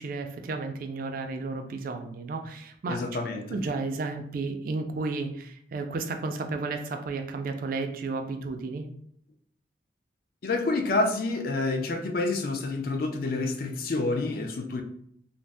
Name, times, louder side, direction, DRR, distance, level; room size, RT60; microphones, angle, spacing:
voice 1, 0.0-3.0 3.4-8.8, right 3 dB, 50° right, 5 dB, 0.3 m, -33 dB
voice 2, 2.9-3.6 10.4-14.8, left 2 dB, 55° left, 5 dB, 0.4 m, -28 dB
2.6 x 2.0 x 3.3 m, 0.68 s
head